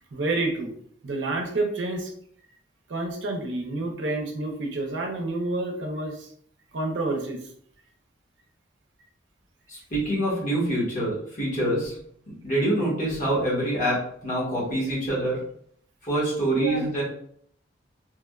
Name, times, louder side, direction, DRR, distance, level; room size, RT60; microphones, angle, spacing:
voice 1, 0.1-0.7 1.0-2.1 2.9-6.3 6.7-7.4 16.5-16.9, right 2 dB, 85° right, 2 dB, 0.6 m, -29 dB
voice 2, 9.7-11.9 12.4-15.4 16.0-17.0, right 1 dB, 45° left, -6 dB, 1.2 m, -25 dB
3.3 x 2.2 x 2.3 m, 0.65 s
head